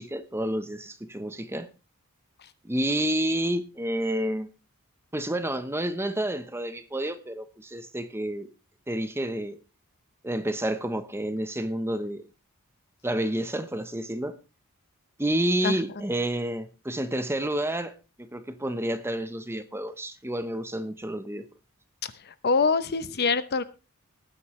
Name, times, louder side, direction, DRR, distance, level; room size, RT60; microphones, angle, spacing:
voice 1, 0.0-1.7 2.6-4.5 5.1-8.5 8.9-9.6 10.2-12.3 13.0-14.4 15.2-17.9 18.2-21.5, right 1 dB, 10° right, 1.0 m, -29 dB
voice 2, 22.0-23.6, left 4 dB, 45° left, 0.8 m, -25 dB
19.0 x 9.5 x 3.2 m
head